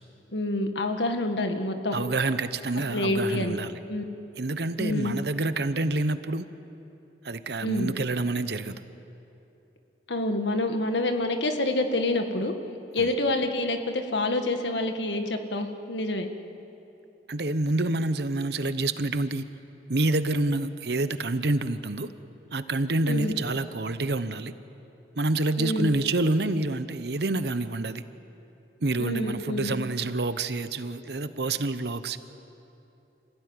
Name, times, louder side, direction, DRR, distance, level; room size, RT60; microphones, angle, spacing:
voice 1, 0.3-2.0 2.9-3.6 3.9-4.0 4.8-5.2 7.6-7.9 10.1-12.5 12.9-16.3 23.1-23.3 25.6-25.9 29.0-29.7, left 2 dB, 75° left, 6 dB, 1.8 m, -27 dB
voice 2, 1.9-3.8 4.4-6.4 7.2-8.8 13.0-13.1 17.3-19.4 19.9-22.1 22.5-24.5 25.2-28.0 28.8-32.2, right 2 dB, 60° right, 12 dB, 0.9 m, -27 dB
27.0 x 16.5 x 9.7 m, 3.0 s
head